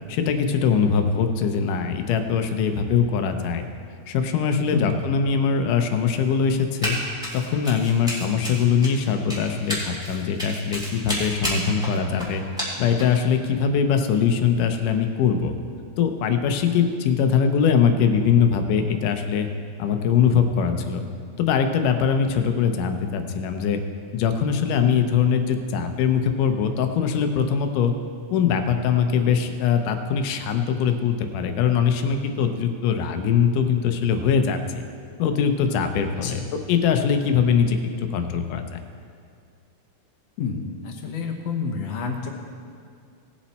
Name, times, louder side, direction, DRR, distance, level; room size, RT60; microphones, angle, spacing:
voice 1, 0.1-3.6 4.1-7.0 7.3-12.4 12.8-15.5 16.0-19.5 19.8-21.0 21.4-23.8 24.1-27.9 28.3-34.8 35.2-37.8 38.1-38.8, left 7 dB, 90° left, 7 dB, 2.4 m, -22 dB
voice 2, 4.7-5.0 36.2-36.5 40.4-42.3, left 5 dB, 65° left, 3 dB, 1.9 m, -29 dB
Run, 6.8-7.0 7.2-13.2, equal, ahead, 3.1 m, -30 dB
18.5 x 7.3 x 4.2 m, 2.3 s
omnidirectional pair, 3.6 m